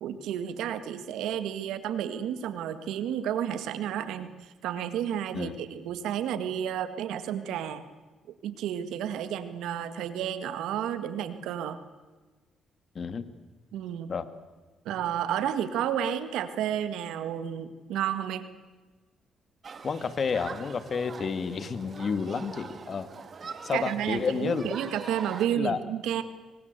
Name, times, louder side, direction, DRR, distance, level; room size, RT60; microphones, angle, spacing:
voice 1, 0.0-7.9 8.4-11.8 13.7-14.1 14.9-18.5 23.7-26.2, right 10 dB, 85° right, 12 dB, 1.8 m, -31 dB
voice 2, 13.0-13.3 14.1-14.3 19.8-23.1 23.6-24.6 25.6-25.8, left 5 dB, 45° left, 12 dB, 2.1 m, -30 dB
Human group actions, 19.6-25.5, right 5 dB, 45° right, 2.1 m, -43 dB
26.5 x 24.0 x 8.2 m, 1.3 s
cardioid pair, 90°, 0 cm